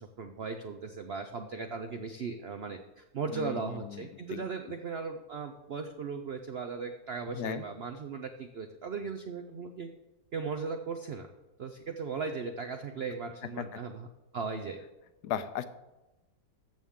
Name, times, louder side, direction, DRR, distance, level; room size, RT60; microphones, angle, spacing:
voice 1, 0.0-9.9 10.3-11.3 11.6-14.1 14.3-14.8, right 5 dB, 75° right, 6 dB, 0.5 m, -37 dB
voice 2, 3.3-4.0 4.3-4.4 7.4-7.6 13.6-13.7 15.2-15.6, left 9 dB, 75° left, 12 dB, 1.0 m, -35 dB
13.5 x 7.2 x 3.6 m, 1.0 s
omnidirectional pair, 1.9 m